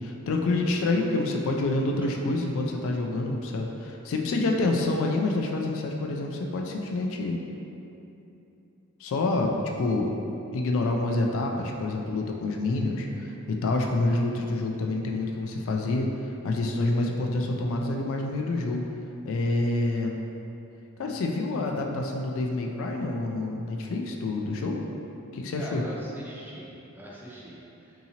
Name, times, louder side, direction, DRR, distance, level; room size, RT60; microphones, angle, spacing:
voice 1, 0.0-7.4 9.0-10.1 10.5-16.1 16.4-18.8 19.3-20.1 21.0-24.8 25.3-25.8, left 2 dB, 65° left, 1 dB, 0.3 m, -27 dB
voice 2, 25.6-27.9, equal, 10° right, -6 dB, 0.5 m, -42 dB
3.7 x 2.8 x 2.8 m, 2.9 s
head